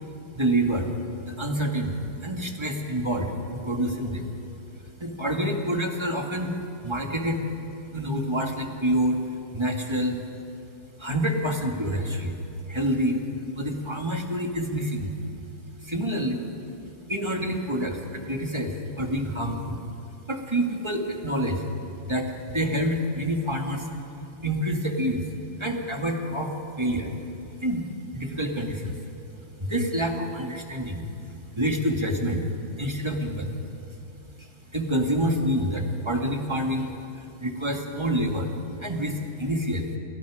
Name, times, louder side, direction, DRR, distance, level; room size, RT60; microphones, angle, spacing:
voice 1, 0.3-0.9 1.2-4.3 5.0-6.5 6.8-7.5 7.9-9.2 9.5-10.2 11.0-12.3 12.7-13.2 13.5-15.1 15.8-16.4 17.1-19.8 20.3-21.6 22.0-23.9 24.4-25.3 25.6-27.1 27.6-27.8 28.1-29.0 29.6-31.1 31.5-32.5 32.8-33.6 34.4-38.5 38.8-40.0, equal, 15° right, 1 dB, 2.1 m, -27 dB
29.5 x 28.5 x 5.1 m, 2.8 s
omnidirectional pair, 2.4 m